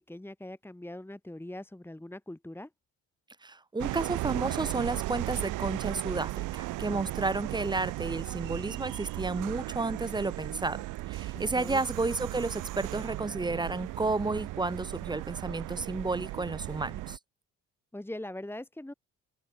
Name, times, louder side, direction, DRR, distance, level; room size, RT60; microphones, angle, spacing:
voice 1, 0.0-2.7 11.3-11.8 17.9-18.9, left 1 dB, 5° left, 3.1 m, -42 dB
voice 2, 3.4-17.2, right 3 dB, 15° right, 1.0 m, -32 dB
sound 1, 3.8-17.2, right 18 dB, 90° right, 0.8 m, -36 dB
cardioid pair, 90°, 30 cm